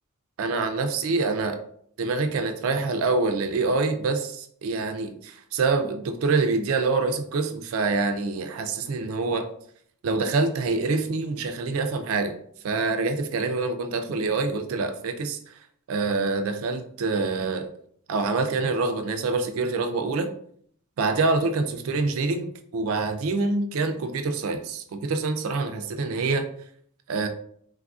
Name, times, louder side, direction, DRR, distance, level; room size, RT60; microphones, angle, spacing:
voice 1, 0.4-1.6 2.0-9.5 10.0-12.3 12.6-15.6 15.9-17.7 18.1-20.3 21.0-26.5 27.1-27.3, right 3 dB, 80° right, 7 dB, 0.4 m, -26 dB
3.3 x 2.5 x 2.3 m, 0.64 s
head